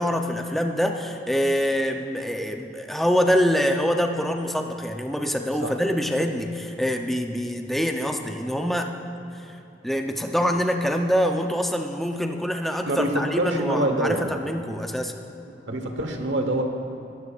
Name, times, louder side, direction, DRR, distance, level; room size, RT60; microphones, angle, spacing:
voice 1, 0.0-8.9 9.8-15.1, equal, ahead, 3 dB, 0.6 m, -25 dB
voice 2, 12.9-14.3 15.7-16.6, right 1 dB, 85° right, 4 dB, 1.2 m, -25 dB
21.0 x 12.0 x 2.5 m, 2.9 s
head